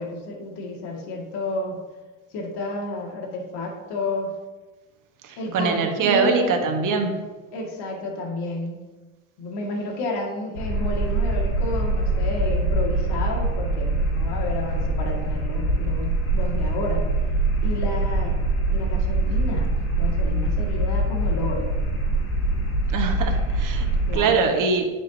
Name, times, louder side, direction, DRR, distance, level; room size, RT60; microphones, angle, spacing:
voice 1, 0.0-1.8 2.3-4.4 5.4-6.6 7.5-8.8 9.4-17.1 17.6-18.4 18.7-19.7 20.0-21.7 24.1-24.5, left 2 dB, 65° left, -1 dB, 2.3 m, -31 dB
voice 2, 5.2-7.1 22.9-23.9 24.1-24.8, right 4 dB, 45° right, 4 dB, 1.3 m, -23 dB
sound 1, 10.6-24.1, right 2 dB, 85° left, 2.4 m, -23 dB
9.9 x 5.2 x 2.8 m, 1.3 s
hypercardioid pair, 75°, 44 cm